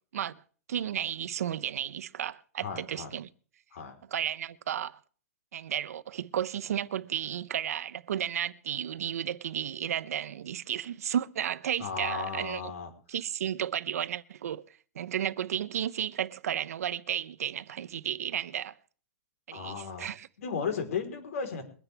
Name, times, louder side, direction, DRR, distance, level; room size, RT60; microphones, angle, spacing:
voice 1, 0.7-3.3 4.1-5.0 5.5-12.6 13.1-14.6 14.9-18.7 19.5-20.3, right 10 dB, 80° right, 0.8 m, -33 dB
voice 2, 2.6-3.1 3.7-4.0 11.8-12.9 19.5-20.1 20.4-21.6, left 6 dB, 70° left, 3.9 m, -35 dB
23.0 x 9.9 x 3.4 m
hypercardioid pair, 170°, 8 cm